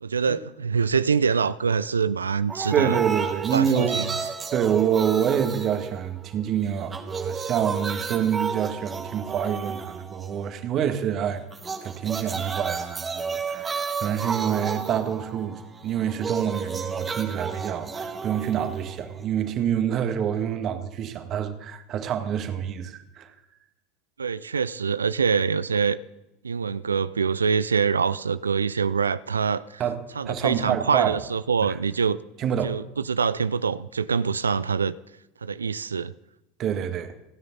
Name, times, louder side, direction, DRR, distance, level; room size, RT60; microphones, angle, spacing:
voice 1, 0.0-4.1 24.2-26.0 26.4-29.8 30.2-32.2 32.6-34.9 35.4-36.1, right 6 dB, 85° right, 0.4 m, -25 dB
sound 1, 2.5-6.5 6.8-10.5 11.5-19.5, right 5 dB, 25° right, 1.9 m, -32 dB
voice 2, 2.7-4.0 4.5-11.4 11.8-23.3 29.8-31.2 32.4-32.8 36.6-37.1, right 9 dB, 45° right, 1.9 m, -27 dB
28.5 x 9.5 x 4.1 m
figure-of-eight pair, 75°, 0 cm